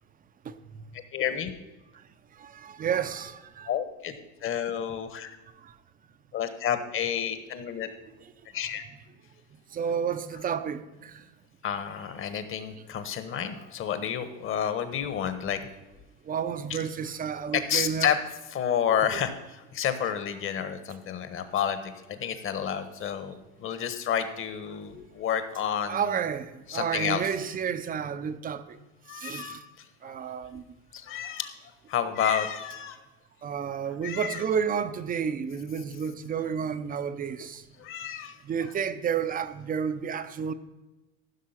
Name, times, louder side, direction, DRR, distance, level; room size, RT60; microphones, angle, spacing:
voice 1, 1.1-1.5 3.7-4.1 4.4-5.4 6.3-7.9 8.5-8.8 10.3-10.5 11.6-15.6 16.7-16.9 17.2-18.2 18.4-26.2 26.7-27.4 29.1-30.2 30.9-31.6 31.9-33.0 34.0-34.5 36.3-36.5 37.8-38.7 40.1-40.3, left 8 dB, 30° left, 1.3 m, -30 dB
voice 2, 2.4-3.7 5.6-5.7 9.7-11.2 16.3-18.1 19.0-19.1 25.9-28.8 29.2-29.6 30.0-30.6 33.4-37.6 38.4-40.5, right 7 dB, 20° right, 0.6 m, -31 dB
15.0 x 6.1 x 5.8 m
supercardioid pair, 125°, 40 cm